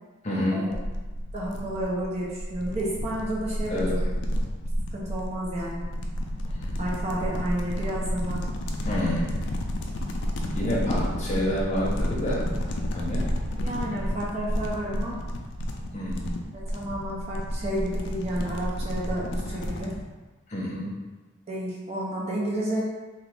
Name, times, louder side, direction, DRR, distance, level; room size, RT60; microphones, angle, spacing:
voice 1, 0.2-0.7 3.7-3.9 6.6-6.8 8.8-9.3 10.5-13.3 15.9-16.3 20.5-20.9, equal, 35° left, -6 dB, 0.8 m, -29 dB
sound 1, 0.7-20.0, equal, 55° left, 0.4 m, -31 dB
voice 2, 1.3-3.8 4.9-5.8 6.8-8.4 10.3-10.6 13.3-15.2 16.5-19.9 21.5-22.8, right 1 dB, 30° right, -5 dB, 0.5 m, -31 dB
2.9 x 2.4 x 3.3 m, 1.3 s
head